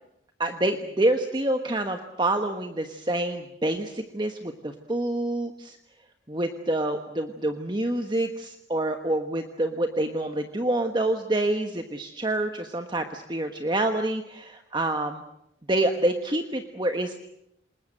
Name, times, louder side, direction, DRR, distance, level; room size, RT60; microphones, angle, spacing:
voice 1, 0.4-5.8 6.3-15.2 15.7-17.2, right 1 dB, 25° right, 6 dB, 1.3 m, -27 dB
27.5 x 20.5 x 7.9 m, 0.82 s
head